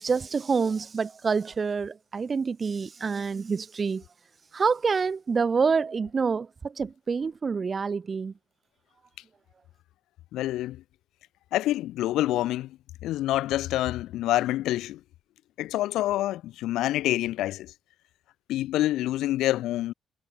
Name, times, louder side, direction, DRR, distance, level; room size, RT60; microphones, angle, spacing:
voice 1, 0.0-4.0 4.5-8.3, right 5 dB, 35° right, 1.9 m, -27 dB
voice 2, 10.3-10.8 11.5-12.8 13.0-15.0 15.6-17.7 18.5-19.9, left 15 dB, 90° left, 3.1 m, -27 dB
cardioid pair, 90°, 0 cm